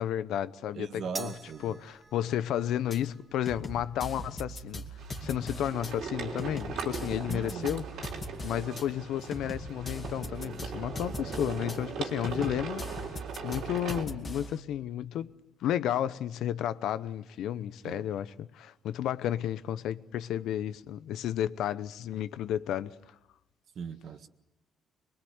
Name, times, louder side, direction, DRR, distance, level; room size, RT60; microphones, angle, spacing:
voice 1, 0.0-1.3 1.6-4.8 5.2-7.8 8.4-13.2 13.4-15.3 15.6-22.9, left 11 dB, 85° left, 0.8 m, -32 dB
voice 2, 0.7-1.8 7.3-7.8 12.3-12.5 17.8-18.0 23.7-24.3, right 6 dB, 55° right, 1.6 m, -39 dB
sound 1, 1.1-7.7, right 2 dB, 20° right, 2.4 m, -50 dB
sound 2, 2.9-3.0 3.5-5.9 6.4-8.8 9.3-11.8 12.2-14.6, equal, 30° left, 2.3 m, -40 dB
sound 3, 5.0-14.0, right 5 dB, 75° right, 3.6 m, -39 dB
23.5 x 23.0 x 8.1 m
cardioid pair, 135°, 0 cm